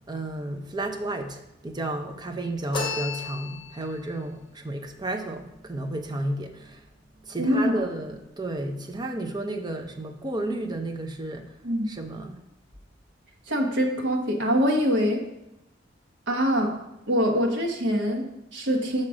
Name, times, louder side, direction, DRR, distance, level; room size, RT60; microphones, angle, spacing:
voice 1, 0.1-6.8 7.2-11.5 11.9-12.4, right 1 dB, 20° right, 4 dB, 0.7 m, -32 dB
sound 1, 2.7-4.0, left 4 dB, 25° left, 1.3 m, -32 dB
voice 2, 7.4-7.8 11.6-11.9 13.5-15.2 16.3-16.8 17.1-19.1, equal, 65° right, 1 dB, 1.2 m, -24 dB
6.3 x 4.3 x 6.2 m, 0.91 s
head